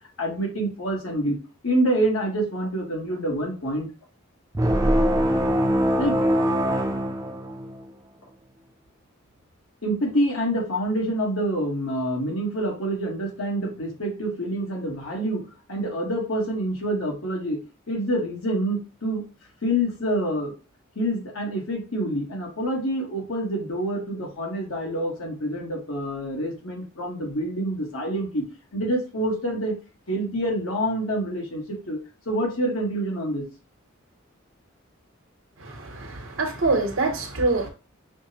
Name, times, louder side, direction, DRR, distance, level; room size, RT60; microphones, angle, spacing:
voice 1, 0.2-1.4 1.6-3.9 6.0-6.2 9.8-17.6 17.9-19.2 19.6-20.5 20.9-28.4 28.7-29.7 30.1-32.0 32.2-33.4, right 1 dB, 85° left, 1.4 m, -27 dB
sound 1, 4.5-7.9, equal, 15° right, 0.4 m, -22 dB
voice 2, 35.6-37.7, right 3 dB, 80° right, 1.0 m, -25 dB
5.9 x 2.1 x 2.8 m
head